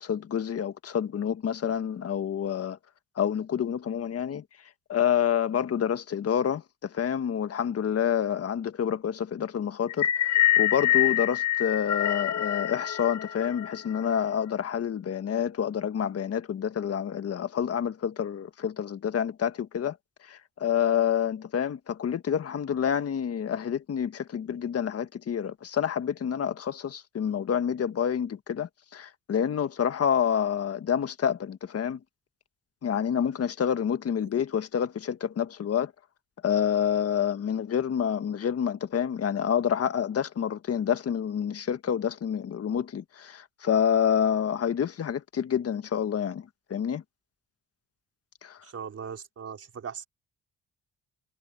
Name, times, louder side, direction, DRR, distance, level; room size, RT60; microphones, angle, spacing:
voice 1, 0.0-2.8 3.2-4.4 4.9-20.0 20.3-32.0 32.8-35.9 36.4-47.0 48.4-48.6, left 8 dB, 50° left, 1.6 m, -28 dB
sound 1, 9.9-14.2, left 12 dB, 65° left, 1.8 m, -26 dB
voice 2, 48.6-50.1, right 7 dB, 50° right, 5.1 m, -39 dB
cardioid pair, 90°, 30 cm